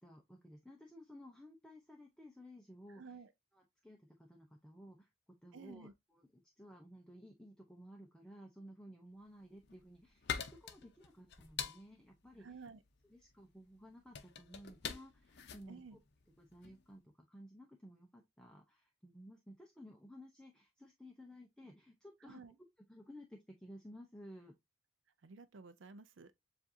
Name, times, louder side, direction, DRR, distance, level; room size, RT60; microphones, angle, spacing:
voice 1, 0.0-3.2 3.5-12.6 13.0-16.0 16.4-24.5, equal, 5° left, 0.5 m, -56 dB
voice 2, 2.9-3.3 5.5-5.9 12.4-12.8 15.7-16.0 22.2-22.6 25.2-26.3, right 4 dB, 60° right, 0.5 m, -53 dB
sound 1, 9.4-16.8, left 7 dB, 50° left, 0.6 m, -46 dB
7.3 x 2.5 x 2.6 m
head